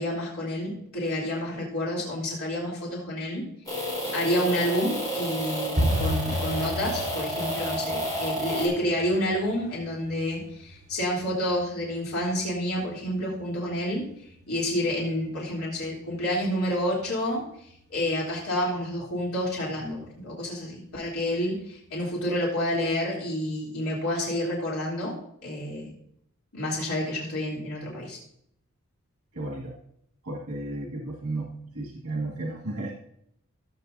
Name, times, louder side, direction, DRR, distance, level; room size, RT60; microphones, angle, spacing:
voice 1, 0.0-3.4 4.1-14.0 14.5-17.4 17.9-25.1 25.4-25.9 26.5-28.2, left 1 dB, 90° left, -4 dB, 3.3 m, -29 dB
sound 1, 3.7-8.7, equal, 15° left, 3.6 m, -30 dB
sound 2, 5.8-16.5 16.7-17.4 17.7-18.0 18.2-18.6 18.9-19.0 19.5-20.1 20.4-20.5 21.0-21.1, equal, 40° right, 3.3 m, -35 dB
voice 2, 29.3-29.7 30.2-32.9, right 2 dB, 80° right, -1 dB, 1.9 m, -33 dB
17.0 x 7.8 x 2.7 m, 0.71 s
head